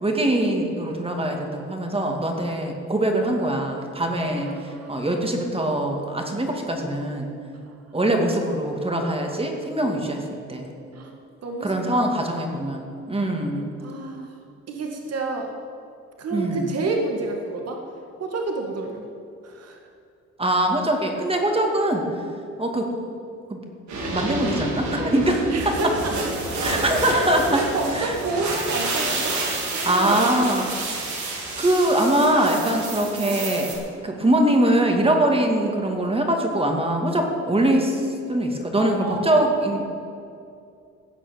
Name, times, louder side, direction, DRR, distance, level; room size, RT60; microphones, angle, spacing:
voice 1, 0.0-7.3 7.9-10.2 10.5-10.7 11.6-13.7 16.3-16.7 20.4-22.1 22.6-22.9 23.5-23.6 24.1-26.0 26.6-27.7 27.9-28.2 29.8-30.7 31.6-33.7 34.0-39.8, right 1 dB, 20° right, 2 dB, 2.3 m, -23 dB
voice 2, 4.3-5.2 10.9-11.1 11.4-12.6 13.8-14.3 14.7-15.5 16.2-17.8 18.2-19.0 19.4-19.8 25.5-26.1 26.5-26.6 27.0-27.2 27.5-30.5 38.8-39.8, right 3 dB, 55° right, 1 dB, 1.9 m, -30 dB
sound 1, 23.9-33.7, right 2 dB, 70° right, 3.5 m, -29 dB
16.5 x 6.1 x 9.4 m, 2.5 s
cardioid pair, 90°, 30 cm